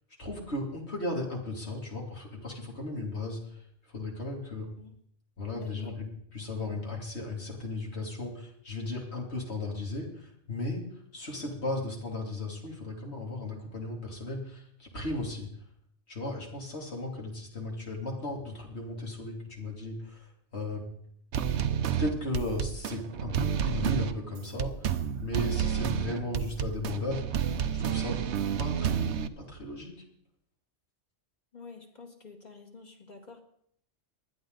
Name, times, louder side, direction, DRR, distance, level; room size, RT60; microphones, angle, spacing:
voice 1, 0.2-4.7 5.4-6.1 6.3-15.5 16.1-20.9 22.0-28.2 28.6-30.0, left 2 dB, 75° left, 0 dB, 3.1 m, -36 dB
voice 2, 5.5-6.0 31.5-33.4, left 4 dB, 40° left, 3 dB, 2.1 m, -49 dB
sound 1, 21.3-29.3, right 8 dB, 85° right, 1.0 m, -30 dB
19.5 x 11.5 x 3.9 m, 0.68 s
omnidirectional pair, 1.1 m